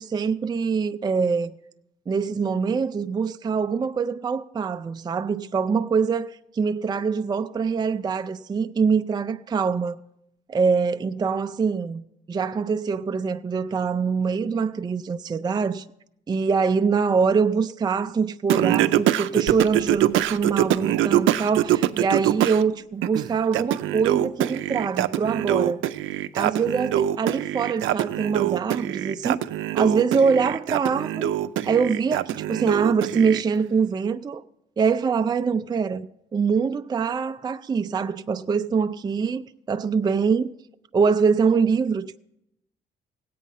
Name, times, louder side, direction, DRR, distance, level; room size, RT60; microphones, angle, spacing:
voice 1, 0.0-1.5 2.1-10.0 10.5-15.8 16.3-25.8 26.3-29.4 29.7-31.4 31.6-34.4 34.8-39.4 39.7-40.5 40.9-42.2, right 5 dB, 20° right, 0.4 m, -24 dB
Singing, 18.5-22.6 23.0-33.4, right 12 dB, 80° right, 0.5 m, -24 dB
sound 1, 19.5-25.2, left 2 dB, 70° left, 0.8 m, -47 dB
17.0 x 8.4 x 5.5 m
cardioid pair, 90°, 20 cm